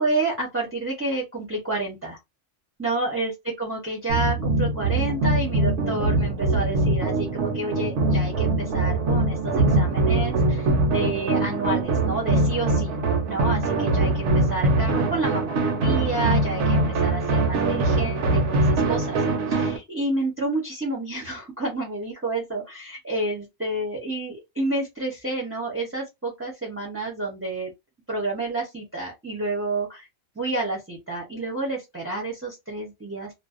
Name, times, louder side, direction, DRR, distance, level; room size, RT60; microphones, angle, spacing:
voice 1, 0.0-2.2 2.8-13.0 13.3-19.2 19.5-27.7 28.1-30.1 30.4-33.3, right 2 dB, 15° right, 0.5 m, -29 dB
sound 1, 4.1-19.8, right 2 dB, 70° right, 0.9 m, -22 dB
2.5 x 2.0 x 2.4 m
omnidirectional pair, 1.3 m